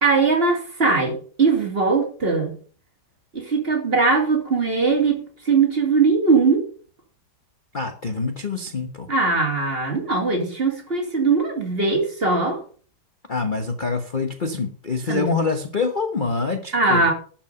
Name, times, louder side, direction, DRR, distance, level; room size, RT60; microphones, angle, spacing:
voice 1, 0.0-2.6 3.3-6.7 9.1-12.6 15.1-15.3 16.7-17.1, right 4 dB, 35° right, 2 dB, 3.2 m, -20 dB
voice 2, 7.7-9.1 13.3-17.0, left 4 dB, 35° left, 6 dB, 1.0 m, -25 dB
12.0 x 5.9 x 6.9 m, 0.42 s
omnidirectional pair, 1.9 m